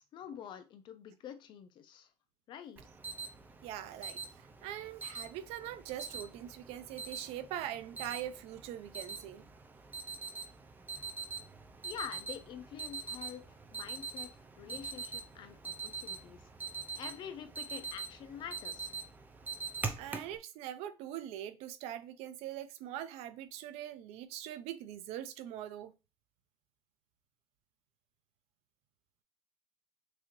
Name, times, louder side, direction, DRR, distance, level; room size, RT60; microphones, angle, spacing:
voice 1, 0.0-2.1 2.5-2.8 11.8-14.3 14.6-19.0, left 8 dB, 50° left, 0.7 m, -47 dB
Alarm, 2.8-20.4, right 5 dB, 15° right, 0.5 m, -44 dB
voice 2, 3.6-9.4 20.0-25.9, right 11 dB, 80° right, 0.5 m, -42 dB
6.1 x 2.7 x 3.0 m
cardioid pair, 155°, 11 cm